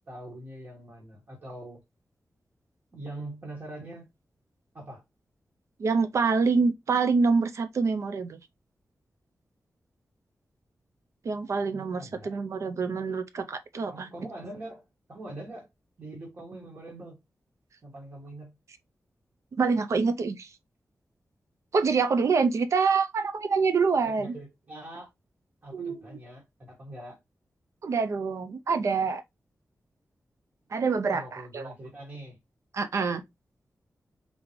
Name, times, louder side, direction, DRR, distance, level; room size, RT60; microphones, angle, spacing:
voice 1, 0.1-1.8 2.9-4.1 4.7-5.0 11.7-12.4 13.9-15.7 16.0-17.2 17.8-18.5 24.0-25.1 25.6-27.2 31.1-32.4, right 1 dB, 40° right, 1.5 m, -43 dB
voice 2, 5.8-8.4 11.2-14.1 19.6-20.5 21.7-24.3 25.7-26.2 27.8-29.2 30.7-31.7 32.7-33.2, right 4 dB, 60° right, 0.5 m, -26 dB
3.8 x 3.7 x 3.1 m
wide cardioid pair, 165°, 6 cm